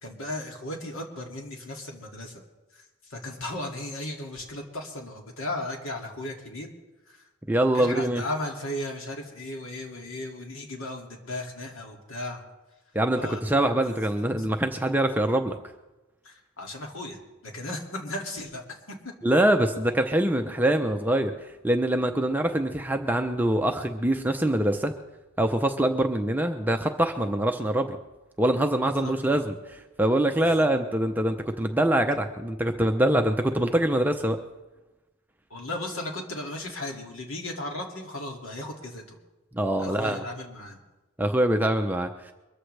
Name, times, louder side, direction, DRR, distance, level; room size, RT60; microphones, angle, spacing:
voice 1, 0.0-2.4 2.7-6.7 7.1-7.3 7.7-12.4 13.2-13.4 13.8-13.9 14.3-14.5 16.2-19.1 28.8-29.4 30.4-30.7 35.5-39.2 39.8-40.8, left 1 dB, 65° left, 1 dB, 2.4 m, -36 dB
voice 2, 7.5-8.2 12.9-15.5 19.2-24.9 25.4-28.0 28.4-34.4 39.5-40.2 41.2-42.3, right 1 dB, 10° right, 5 dB, 0.6 m, -24 dB
23.0 x 14.0 x 3.3 m, 1.1 s
head